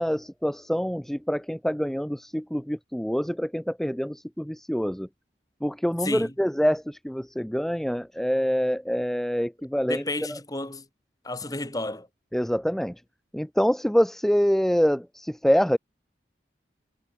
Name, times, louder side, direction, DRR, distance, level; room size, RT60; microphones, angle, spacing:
voice 1, 0.0-5.1 5.6-10.0 10.3-10.4 12.3-12.9 13.3-15.8, equal, ahead, 0.4 m, -25 dB
voice 2, 6.0-6.3 9.8-10.8 11.2-12.1, left 2 dB, 20° left, 2.9 m, -32 dB
head